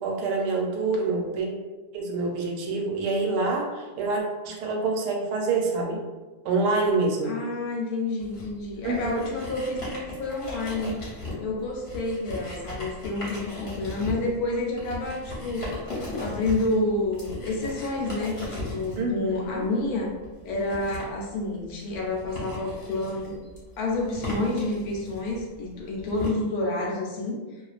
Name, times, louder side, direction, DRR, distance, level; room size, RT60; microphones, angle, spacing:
voice 1, 0.0-1.5 1.9-6.0 6.4-7.3 8.8-9.3 19.0-19.7, right 3 dB, 85° right, 0 dB, 1.1 m, -26 dB
voice 2, 7.2-11.0 11.4-15.7 16.2-20.1 20.4-23.5 23.8-27.4, left 2 dB, 70° left, -2 dB, 1.0 m, -29 dB
sound 1, 8.2-26.3, left 2 dB, 50° left, 0.9 m, -38 dB
2.4 x 2.3 x 2.3 m, 1.2 s
omnidirectional pair, 1.7 m